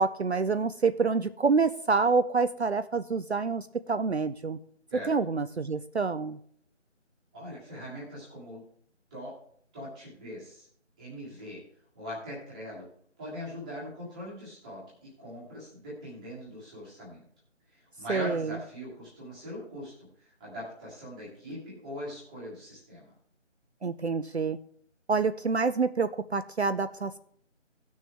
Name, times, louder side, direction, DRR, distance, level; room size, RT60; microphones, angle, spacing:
voice 1, 0.0-4.6 5.1-6.4 18.1-18.6 23.8-24.6 25.1-27.2, right 4 dB, 60° right, 11 dB, 0.5 m, -27 dB
voice 2, 7.3-8.6 9.1-9.3 9.7-10.7 11.0-11.6 11.9-12.8 13.2-17.2 17.7-23.1, equal, 5° right, -8 dB, 1.6 m, -41 dB
17.0 x 6.3 x 3.4 m, 0.63 s
figure-of-eight pair, 160°, 37 cm